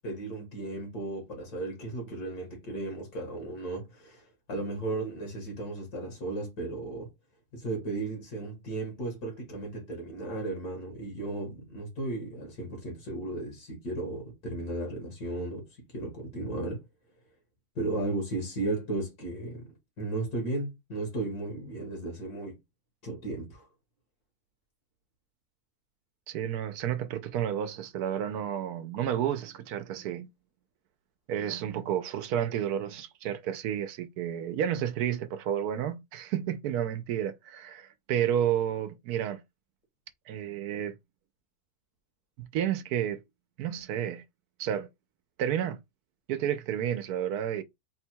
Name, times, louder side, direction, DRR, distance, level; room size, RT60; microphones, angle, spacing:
voice 1, 0.0-7.1 7.5-15.6 15.9-16.8 17.8-19.7 20.0-22.6 23.0-23.6, right 2 dB, 75° left, 2.1 m, -35 dB
voice 2, 26.3-30.3 31.3-39.4 40.3-40.9 42.4-43.2 43.6-44.2 44.6-44.9 45.4-45.8 46.3-47.6, right 10 dB, 80° right, 1.1 m, -31 dB
4.1 x 2.3 x 4.4 m
omnidirectional pair, 1.6 m